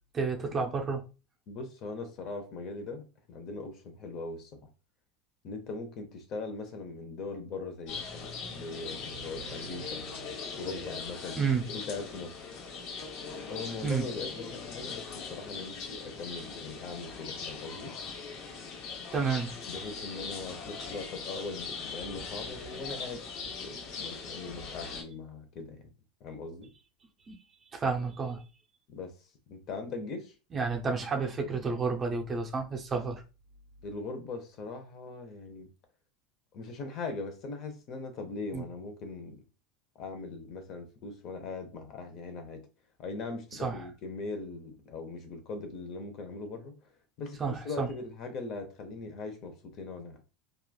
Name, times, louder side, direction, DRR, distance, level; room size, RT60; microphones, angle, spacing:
voice 1, 0.1-1.1 11.4-11.6 13.8-14.1 19.1-19.5 27.3-27.4 27.7-28.4 30.5-33.2 38.5-38.6 43.5-43.9 47.4-47.9, right 5 dB, 25° right, 0.5 m, -30 dB
voice 2, 1.5-4.5 5.4-10.0 10.5-11.4 11.7-12.4 13.5-15.0 15.3-17.9 19.7-23.2 23.6-25.9 26.2-26.7 28.9-29.1 29.5-30.3 33.8-35.7 36.5-39.4 40.0-42.6 43.0-46.7 47.2-50.2, left 3 dB, 45° left, 0.7 m, -40 dB
sound 1, 7.9-25.0, left 4 dB, 65° left, 1.0 m, -40 dB
3.0 x 2.3 x 2.2 m
supercardioid pair, 125°, 0 cm